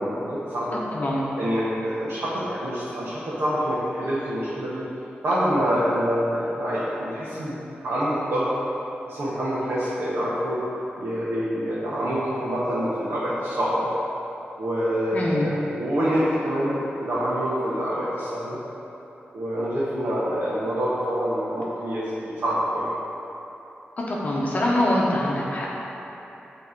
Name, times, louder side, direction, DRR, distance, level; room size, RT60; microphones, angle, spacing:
voice 1, 0.0-0.7 1.4-4.8 5.2-7.6 7.8-8.5 9.1-10.6 11.0-13.9 14.6-18.6 19.3-22.9, equal, 90° right, -10 dB, 1.2 m, -26 dB
voice 2, 0.7-1.3 15.1-15.5 24.1-25.7, left 1 dB, 40° left, -4 dB, 0.8 m, -24 dB
8.3 x 3.4 x 4.5 m, 3.0 s
wide cardioid pair, 160°, 4 cm